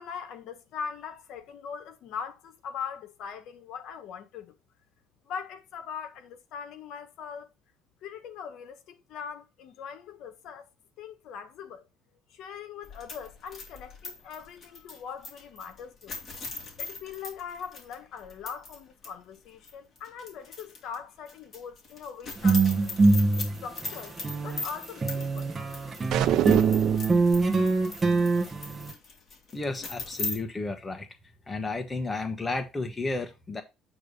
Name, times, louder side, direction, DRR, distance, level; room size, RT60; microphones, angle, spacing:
voice 1, 0.0-4.5 5.2-7.5 8.0-10.7 11.0-11.9 12.3-16.2 16.8-22.9 23.4-24.2 24.4-25.5, left 7 dB, 65° left, 1.4 m, -41 dB
sound 1, 12.8-18.8 19.0-19.1 19.6-21.0 21.3-30.4, left 3 dB, 35° left, 2.6 m, -40 dB
sound 2, 22.4-24.6 25.0-28.9, right 3 dB, 20° right, 1.3 m, -24 dB
sound 3, 26.1-27.1, right 11 dB, 65° right, 0.7 m, -24 dB
voice 2, 29.5-31.1 31.5-33.6, left 3 dB, 15° left, 1.3 m, -32 dB
8.7 x 3.2 x 5.5 m
cardioid pair, 130°, 0 cm